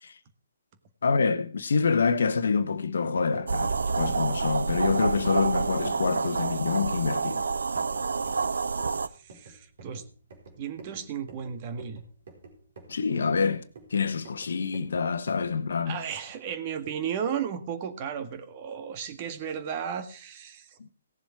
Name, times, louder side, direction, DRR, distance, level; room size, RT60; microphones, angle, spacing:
voice 1, 1.0-7.4 12.9-13.6 13.9-16.0 20.8-20.9, left 5 dB, 65° left, 1.2 m, -26 dB
sound 1, 3.0-15.6, right 4 dB, 55° right, 4.1 m, -50 dB
sound 2, 3.5-9.1, right 4 dB, 70° right, 0.7 m, -28 dB
voice 2, 9.2-10.0 10.6-12.0 15.9-20.8, right 8 dB, 35° right, 1.8 m, -34 dB
17.5 x 7.3 x 4.7 m
figure-of-eight pair, 135°, 0 cm